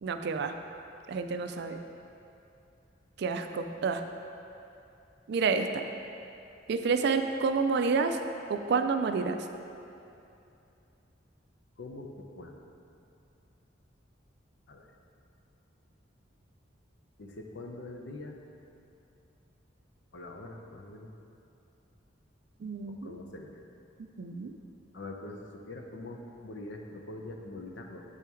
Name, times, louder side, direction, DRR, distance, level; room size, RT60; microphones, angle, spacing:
voice 1, 0.0-0.5 1.1-1.8 3.2-4.0 5.3-5.8 6.7-8.2 8.5-9.4 22.6-23.1 24.0-24.5, right 5 dB, 60° right, 7 dB, 0.3 m, -29 dB
voice 2, 11.8-12.6 14.7-14.9 17.2-18.4 20.1-21.1 22.9-23.7 24.9-28.0, left 2 dB, 65° left, 2 dB, 0.6 m, -44 dB
8.3 x 4.5 x 3.5 m, 2.7 s
head